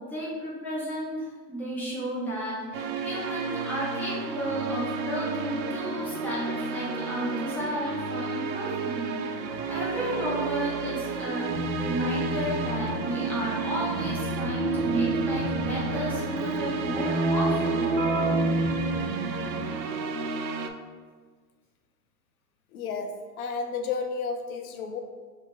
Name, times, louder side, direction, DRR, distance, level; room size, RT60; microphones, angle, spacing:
voice 1, 0.1-11.5 11.8-17.9, equal, 5° left, -8 dB, 0.4 m, -33 dB
sound 1, 2.7-20.7, right 5 dB, 85° right, 0.6 m, -32 dB
Keyboard (musical), 11.5-19.9, right 1 dB, 45° right, 0.8 m, -30 dB
voice 2, 22.7-25.0, left 5 dB, 60° left, 5 dB, 0.6 m, -32 dB
2.9 x 2.6 x 4.3 m, 1.5 s
hypercardioid pair, 115°, 50 cm